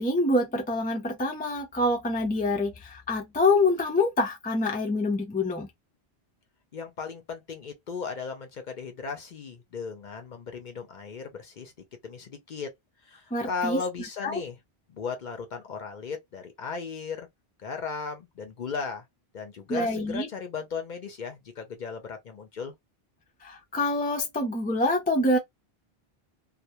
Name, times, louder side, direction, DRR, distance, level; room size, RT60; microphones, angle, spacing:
voice 1, 0.0-5.7 13.3-13.8 14.2-14.4 19.7-20.3 23.4-25.4, left 2 dB, 15° left, 0.3 m, -26 dB
voice 2, 6.7-11.7 12.0-12.7 13.0-14.6 14.9-17.3 17.6-19.0 19.3-22.7, left 5 dB, 55° left, 0.6 m, -36 dB
2.2 x 2.1 x 2.8 m
omnidirectional pair, 1.1 m